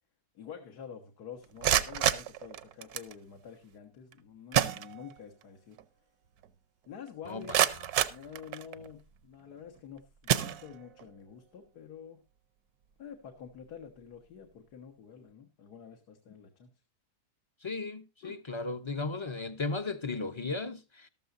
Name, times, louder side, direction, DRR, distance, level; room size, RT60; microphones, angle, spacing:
voice 1, 0.4-5.8 6.9-7.6 8.1-12.2 13.0-16.7 18.2-18.4, left 7 dB, 85° left, 1.9 m, -48 dB
sound 1, 1.4-3.2 4.1-4.2 4.5-5.4 5.8-5.9 6.4-6.5 7.1-8.9 9.6-9.8 10.2-11.1, right 10 dB, 75° right, 1.3 m, -30 dB
voice 2, 17.6-21.1, left 3 dB, 35° left, 0.4 m, -35 dB
14.0 x 13.0 x 2.5 m
omnidirectional pair, 1.6 m